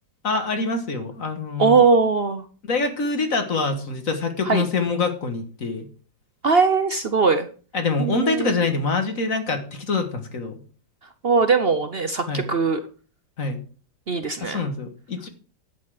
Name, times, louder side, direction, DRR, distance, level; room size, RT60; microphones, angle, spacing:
voice 1, 0.2-1.8 2.7-5.9 7.7-10.6 12.3-12.5 13.4-13.6 14.4-15.3, left 3 dB, 50° left, 7 dB, 1.8 m, -25 dB
voice 2, 1.6-2.4 4.4-4.6 6.4-7.5 8.0-8.5 11.2-12.8 14.1-14.6, right 4 dB, 55° right, 9 dB, 0.6 m, -20 dB
11.0 x 8.4 x 4.9 m, 0.40 s
omnidirectional pair, 1.9 m